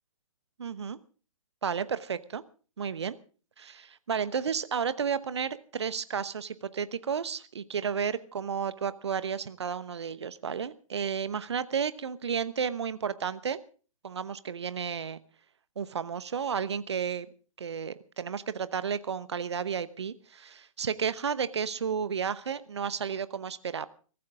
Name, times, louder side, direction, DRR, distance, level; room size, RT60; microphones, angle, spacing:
voice 1, 0.6-1.0 1.6-2.4 2.8-3.2 3.6-13.6 14.0-15.2 15.8-17.3 17.6-23.9, right 7 dB, 55° right, 15 dB, 1.0 m, -32 dB
22.5 x 14.5 x 3.7 m, 0.38 s
figure-of-eight pair, 130°, 17 cm